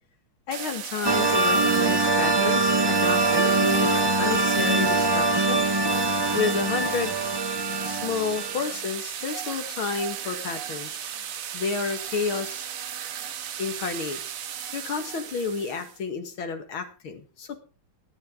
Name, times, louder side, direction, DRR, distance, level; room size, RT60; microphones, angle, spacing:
voice 1, 0.5-5.6 6.3-7.1 7.8-11.0 11.5-12.6 13.6-14.2 14.7-17.6, left 5 dB, 75° left, 7 dB, 2.6 m, -30 dB
sound 1, 0.5-16.0, right 9 dB, 60° right, 0.9 m, -35 dB
sound 2, 1.0-8.8, right 2 dB, 35° right, 0.4 m, -23 dB
17.5 x 11.0 x 3.8 m, 0.35 s
omnidirectional pair, 2.3 m